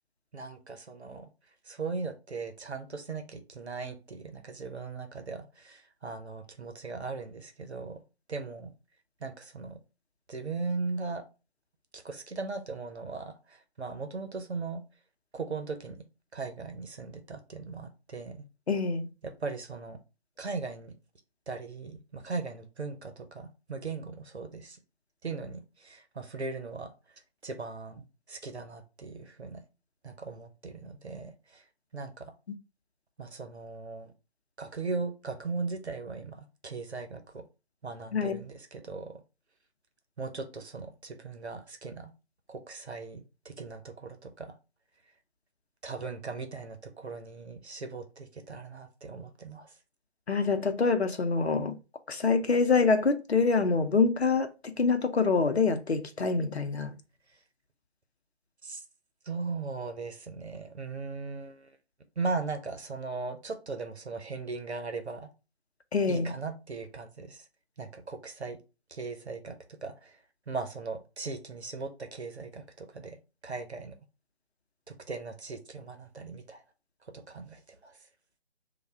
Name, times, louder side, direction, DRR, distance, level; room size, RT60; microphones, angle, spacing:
voice 1, 0.3-1.3 1.7-8.0 8.3-8.7 9.2-9.8 10.3-11.2 11.9-14.8 15.3-16.0 16.3-18.4 19.2-20.0 20.4-20.9 21.5-24.8 25.2-26.9 27.4-29.6 30.0-31.6 31.9-32.3 33.2-34.1 34.6-37.4 37.8-39.1 40.2-42.1 42.5-44.5 45.8-49.7 58.6-58.8 59.2-61.7 62.2-65.3 66.1-67.5 67.8-68.6 68.9-70.2 70.5-73.2 73.4-74.0 74.9-76.6 77.1-78.0, right 4 dB, 70° right, 0.9 m, -38 dB
voice 2, 18.7-19.1 38.1-38.4 50.3-51.7 52.1-57.0 65.9-66.3, left 4 dB, 70° left, 0.7 m, -26 dB
3.2 x 2.3 x 4.3 m
figure-of-eight pair, 155°, 34 cm